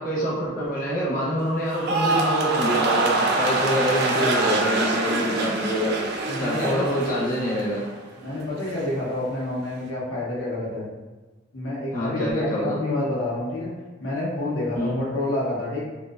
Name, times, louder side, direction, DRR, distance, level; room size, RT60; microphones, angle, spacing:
voice 1, 0.0-6.0 6.4-7.8 11.9-12.8 14.7-15.0, equal, 45° left, -7 dB, 0.7 m, -26 dB
sound 1, 1.7-8.0 8.3-8.8, right 2 dB, 55° right, 0.3 m, -25 dB
voice 2, 6.3-6.9 8.2-10.9 11.5-13.7 14.0-15.8, left 2 dB, 85° left, -6 dB, 0.7 m, -28 dB
2.6 x 2.1 x 2.3 m, 1.2 s
head